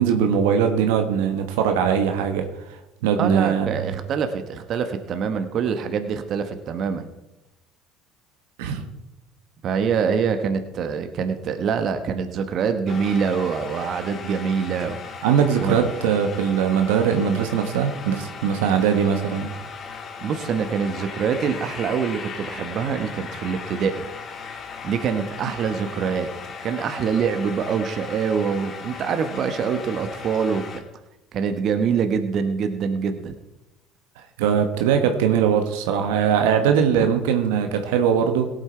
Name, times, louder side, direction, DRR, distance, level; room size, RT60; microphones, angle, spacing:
voice 1, 0.0-3.7 8.6-8.8 15.2-19.5 34.4-38.5, right 7 dB, 80° right, 6 dB, 1.2 m, -21 dB
voice 2, 3.2-7.1 9.6-15.0 15.6-15.9 20.2-24.1 24.8-26.3 26.6-30.8 31.3-33.3 37.0-37.1, right 6 dB, 55° right, 8 dB, 1.2 m, -25 dB
sound 1, 12.9-30.8, left 5 dB, 45° left, 1.8 m, -37 dB
17.5 x 8.1 x 4.5 m, 0.93 s
hypercardioid pair, 75°, 0 cm